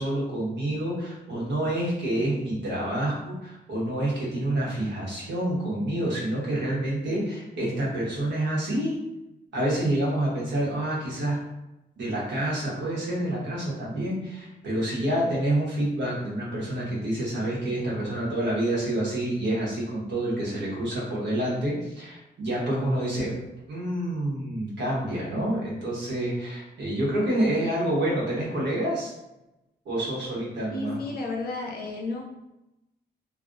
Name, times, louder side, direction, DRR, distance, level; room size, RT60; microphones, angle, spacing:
voice 1, 0.0-8.9 9.5-11.4 12.0-23.4 23.7-29.1 29.8-31.0, right 1 dB, 85° right, -5 dB, 1.0 m, -28 dB
voice 2, 30.7-32.2, left 3 dB, 60° left, 0 dB, 0.6 m, -32 dB
2.4 x 2.0 x 2.5 m, 0.94 s
cardioid pair, 105°, 18 cm